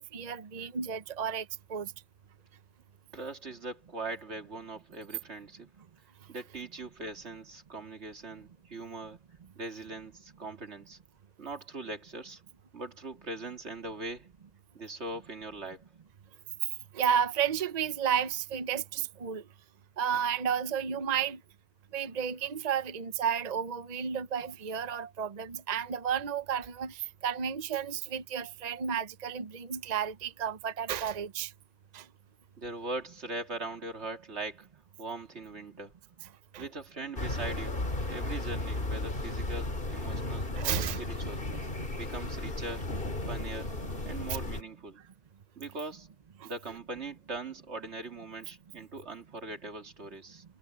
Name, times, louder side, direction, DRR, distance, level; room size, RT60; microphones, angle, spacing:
voice 1, 0.0-1.9 16.9-19.4 20.0-21.4 21.9-31.5 31.9-32.1 36.5-36.6 40.6-41.0 41.5-41.6 44.3-44.4 46.4-46.5, right 8 dB, 40° right, 0.8 m, -32 dB
voice 2, 3.1-5.7 6.3-9.2 9.5-11.0 11.4-12.4 12.7-14.3 14.7-15.8 32.6-34.7 35.0-35.9 36.6-41.4 41.9-42.9 43.2-43.7 44.0-45.0 45.6-46.1 46.4-50.4, right 2 dB, 80° right, 2.5 m, -41 dB
sound 1, 37.2-44.6, left 2 dB, 55° left, 2.8 m, -34 dB
omnidirectional pair, 1.1 m